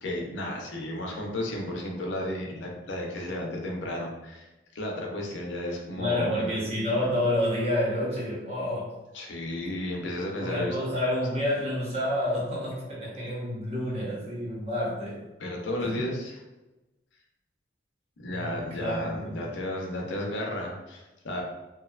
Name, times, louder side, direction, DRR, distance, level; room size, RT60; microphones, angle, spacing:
voice 1, 0.0-6.5 9.1-10.8 15.4-16.4 18.2-21.4, left 1 dB, 80° left, 0 dB, 0.5 m, -33 dB
voice 2, 6.0-8.9 10.4-15.2 15.8-16.1 18.3-19.4, left 1 dB, 35° right, -5 dB, 0.7 m, -29 dB
2.7 x 2.2 x 2.3 m, 1.0 s
head